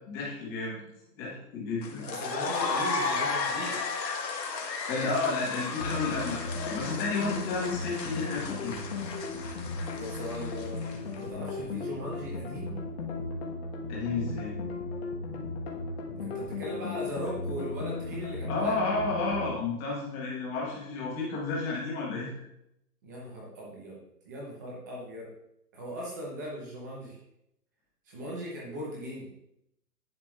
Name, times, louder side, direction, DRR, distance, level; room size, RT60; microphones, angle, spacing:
voice 1, 0.1-0.8 1.2-2.1 4.9-8.7 13.9-14.6 15.3-15.4 18.5-22.3, left 3 dB, 15° left, -4 dB, 1.2 m, -32 dB
sound 1, 1.8-11.1, left 4 dB, 85° left, 1.6 m, -34 dB
voice 2, 2.1-3.8 9.9-12.8 16.2-18.8 23.0-24.0 24.2-25.3 25.7-27.2 28.1-29.3, equal, 10° right, -3 dB, 0.8 m, -39 dB
sound 2, 5.8-19.5, left 3 dB, 40° left, 1.3 m, -36 dB
10.5 x 4.8 x 2.4 m, 0.81 s
hypercardioid pair, 170°, 48 cm